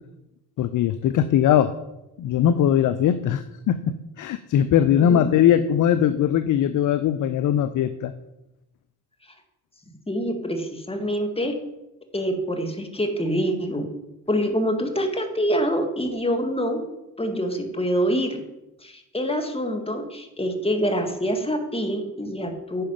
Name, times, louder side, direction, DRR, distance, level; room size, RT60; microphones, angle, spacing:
voice 1, 0.6-1.7 2.2-8.1, left 10 dB, 40° left, 12 dB, 0.6 m, -20 dB
voice 2, 5.0-5.3 10.1-11.6 12.1-13.9 14.3-16.8 17.2-18.4 18.8-22.8, equal, 10° left, 5 dB, 1.9 m, -25 dB
9.9 x 5.8 x 5.2 m, 0.92 s
figure-of-eight pair, 45°, 49 cm